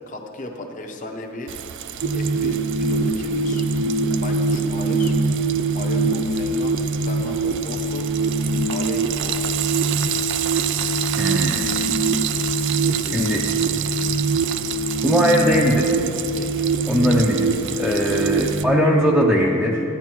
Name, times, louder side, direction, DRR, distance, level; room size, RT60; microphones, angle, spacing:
voice 1, 0.1-1.6 2.1-3.6 4.2-5.1 5.7-8.1 8.7-9.6 12.8-13.4 14.1-14.7 16.3-16.7 17.7-18.7, left 2 dB, 35° left, 3 dB, 0.8 m, -35 dB
Frying (food), 1.5-18.6, right 11 dB, 55° right, 0.3 m, -29 dB
sound 1, 2.0-19.3, right 3 dB, 70° right, 0.8 m, -23 dB
voice 2, 11.2-11.7 13.1-13.4 15.0-15.9 16.9-19.8, equal, ahead, -4 dB, 0.5 m, -20 dB
14.0 x 9.5 x 3.0 m, 2.8 s
head